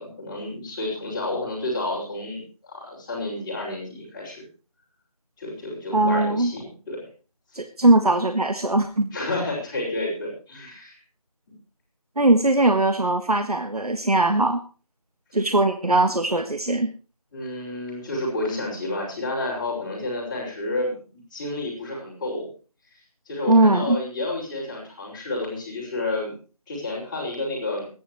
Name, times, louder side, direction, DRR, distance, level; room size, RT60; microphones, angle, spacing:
voice 1, 0.0-4.4 5.4-7.1 7.5-7.6 9.1-11.0 17.3-22.5 23.3-26.3 26.7-27.9, left 2 dB, 10° left, -8 dB, 5.5 m, -30 dB
voice 2, 5.9-6.5 7.5-9.1 12.2-14.6 15.3-16.9 23.5-24.0, right 2 dB, 85° right, 6 dB, 1.7 m, -20 dB
25.0 x 11.0 x 3.1 m, 0.37 s
figure-of-eight pair, 170°, 19 cm